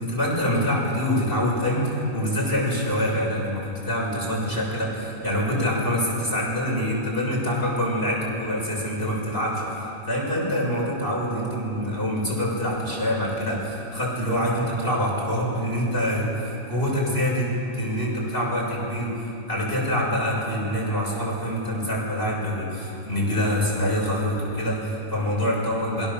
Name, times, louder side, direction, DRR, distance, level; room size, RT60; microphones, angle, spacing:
voice 1, 0.0-26.1, equal, 45° left, -4 dB, 6.9 m, -25 dB
29.0 x 23.5 x 7.3 m, 2.8 s
omnidirectional pair, 1.4 m